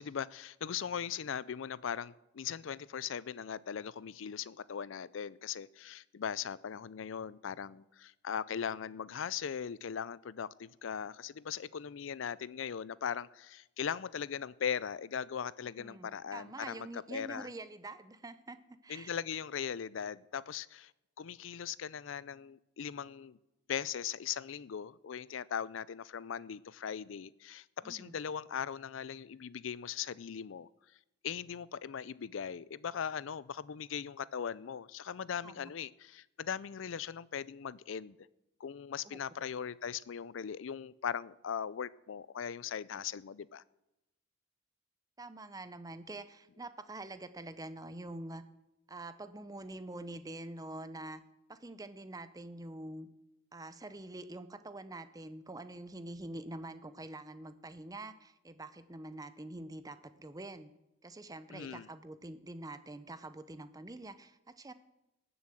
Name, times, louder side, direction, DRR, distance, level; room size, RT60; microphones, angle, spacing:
voice 1, 0.0-17.5 18.9-20.9 21.2-23.4 23.7-30.7 31.2-38.2 38.6-43.6 61.5-61.9, left 8 dB, 70° left, 0.4 m, -39 dB
voice 2, 15.8-19.1 27.8-28.2 35.4-35.7 39.0-39.2 45.2-48.4 48.9-51.2 51.5-53.1 53.5-60.7 61.0-64.7, right 2 dB, 20° right, 0.7 m, -46 dB
19.0 x 7.1 x 7.6 m
head